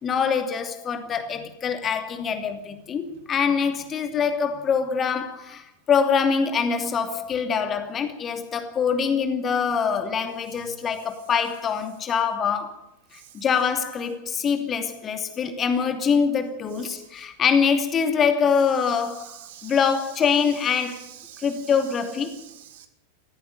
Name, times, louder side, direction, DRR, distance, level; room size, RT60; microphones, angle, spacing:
voice 1, 0.0-12.8 13.1-19.3 19.6-21.0 21.4-22.4, left 6 dB, 25° left, 2.7 m, -24 dB
voice 2, 16.7-17.1 18.7-22.9, right 11 dB, 55° right, 3.0 m, -46 dB
17.5 x 15.0 x 10.0 m
figure-of-eight pair, 90°, 0 cm